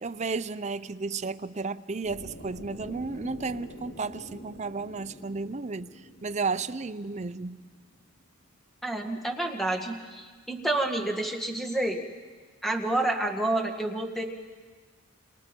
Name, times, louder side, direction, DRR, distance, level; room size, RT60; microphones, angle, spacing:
voice 1, 0.0-5.9 6.2-7.6, right 4 dB, 35° right, 0.6 m, -33 dB
sound 1, 2.0-8.1, equal, 90° left, 6.3 m, -47 dB
voice 2, 8.8-12.0 12.6-14.2, right 2 dB, ahead, 1.8 m, -29 dB
28.5 x 27.0 x 4.6 m
head